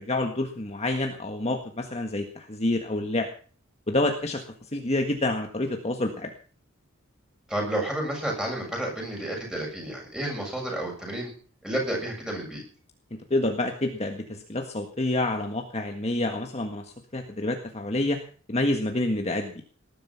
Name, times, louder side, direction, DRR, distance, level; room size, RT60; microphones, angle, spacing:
voice 1, 0.0-3.3 3.9-4.4 4.7-6.3 13.3-18.2 18.5-19.5, left 2 dB, 30° left, 4 dB, 1.7 m, -28 dB
voice 2, 7.5-11.3 11.6-12.6, right 1 dB, 5° right, 0 dB, 7.1 m, -31 dB
19.0 x 12.0 x 5.8 m, 0.43 s
head